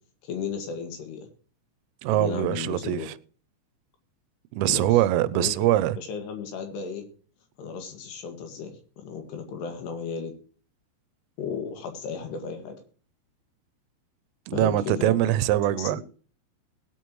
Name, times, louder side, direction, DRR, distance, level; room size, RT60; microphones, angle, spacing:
voice 1, 0.2-1.3 2.1-3.1 4.7-5.0 5.3-5.5 6.0-7.0 7.6-10.3 11.4-12.8 14.5-15.2 15.8-16.0, left 6 dB, 65° left, 3.7 m, -34 dB
voice 2, 2.0-3.1 4.5-6.0 14.5-16.0, right 14 dB, 90° right, 3.3 m, -23 dB
19.5 x 8.2 x 3.1 m
omnidirectional pair, 5.7 m